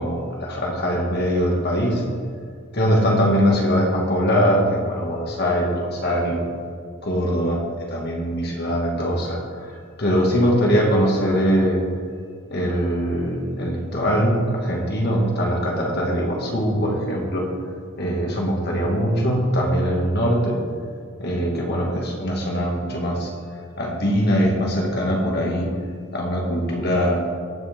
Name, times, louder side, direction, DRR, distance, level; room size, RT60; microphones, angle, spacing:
voice 1, 0.0-2.0 2.7-6.5 7.0-11.8 12.5-17.5 18.0-20.6 21.2-23.3 23.8-25.7 26.1-27.2, equal, 55° left, -1 dB, 2.3 m, -22 dB
19.0 x 6.4 x 3.7 m, 2.2 s
head